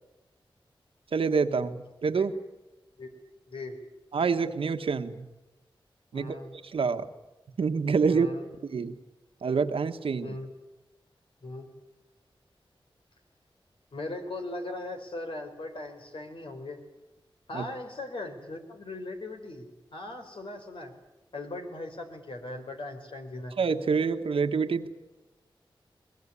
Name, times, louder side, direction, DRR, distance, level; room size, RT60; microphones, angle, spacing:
voice 1, 1.1-2.3 4.1-5.3 6.1-6.4 6.6-7.1 7.6-8.3 8.6-8.9 9.4-10.4 17.5-17.6 23.6-24.9, right 5 dB, 90° right, 8 dB, 1.4 m, -27 dB
voice 2, 6.1-6.5 8.1-8.5 10.2-10.5 11.4-11.7 13.9-16.8 17.5-20.9 21.3-23.6, left 2 dB, 75° left, 4 dB, 4.5 m, -39 dB
21.5 x 21.5 x 9.8 m, 1.0 s
cardioid pair, 55°, 9 cm